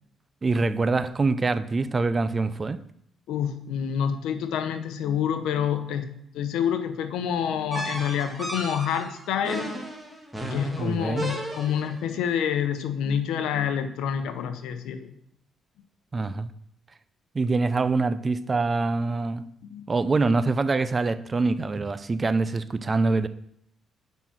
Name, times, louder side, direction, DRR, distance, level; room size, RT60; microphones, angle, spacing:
voice 1, 0.4-2.8 10.8-11.3 16.1-16.5 17.3-19.4 19.9-23.3, right 3 dB, 30° right, 0.5 m, -25 dB
voice 2, 3.3-9.7 10.5-15.1 19.6-19.9, left 8 dB, 90° left, 0.8 m, -28 dB
sound 1, 7.7-12.0, right 1 dB, 10° right, 1.7 m, -34 dB
7.2 x 5.8 x 5.8 m
cardioid pair, 90°, 0 cm